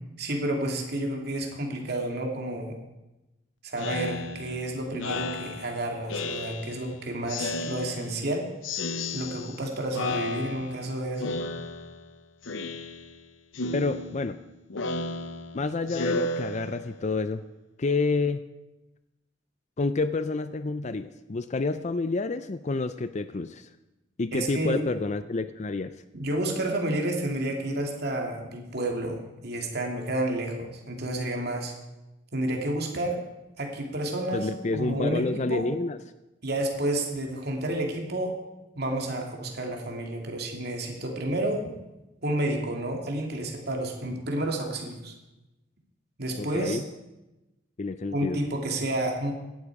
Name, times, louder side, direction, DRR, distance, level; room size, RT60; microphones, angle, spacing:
voice 1, 0.2-2.7 3.6-8.5 9.1-11.3 24.3-24.8 26.1-31.7 32.3-33.2 33.6-35.6 36.4-38.4 38.8-41.6 42.2-45.1 46.2-46.8 48.1-49.3, right 1 dB, 55° right, 1 dB, 2.8 m, -30 dB
Speech synthesizer, 3.8-6.9 7.3-8.3 8.6-9.7 9.9-10.9 11.2-12.1 12.4-13.2 13.5-17.1, left 2 dB, 80° left, 0.9 m, -33 dB
voice 2, 13.7-14.4 15.5-17.4 17.8-18.4 19.8-23.7 24.2-25.9 34.3-36.0 46.4-46.8 47.8-48.4, left 3 dB, 35° left, 12 dB, 0.5 m, -29 dB
17.5 x 12.0 x 4.8 m, 0.99 s
head